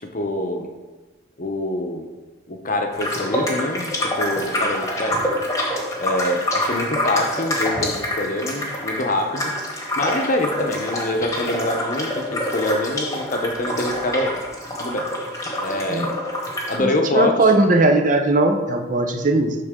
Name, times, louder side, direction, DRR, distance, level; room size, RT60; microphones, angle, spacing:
voice 1, 0.1-0.7 1.4-2.1 2.5-5.2 6.0-9.5 10.0-14.4 14.8-15.1 15.6-16.1 16.7-17.4, left 1 dB, 45° left, 3 dB, 0.8 m, -25 dB
sound 1, 2.9-16.8, left 1 dB, 15° left, 1.1 m, -26 dB
voice 2, 16.8-19.6, right 2 dB, 40° right, 5 dB, 0.6 m, -18 dB
11.5 x 3.9 x 3.7 m, 1.2 s
head